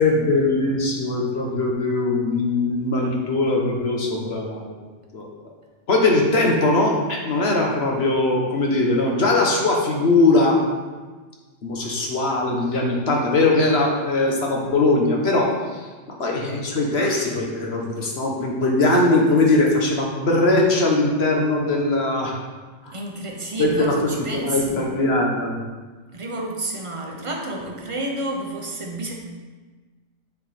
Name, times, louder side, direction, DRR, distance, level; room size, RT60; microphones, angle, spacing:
voice 1, 0.0-4.7 5.1-5.3 5.9-10.6 11.6-15.9 16.2-22.4 22.8-22.9 23.6-23.9 24.3-25.6, left 2 dB, 55° left, 0 dB, 1.3 m, -20 dB
voice 2, 22.9-24.9 26.1-29.1, right 1 dB, 30° right, 0 dB, 0.9 m, -30 dB
7.1 x 4.9 x 4.2 m, 1.3 s
omnidirectional pair, 1.3 m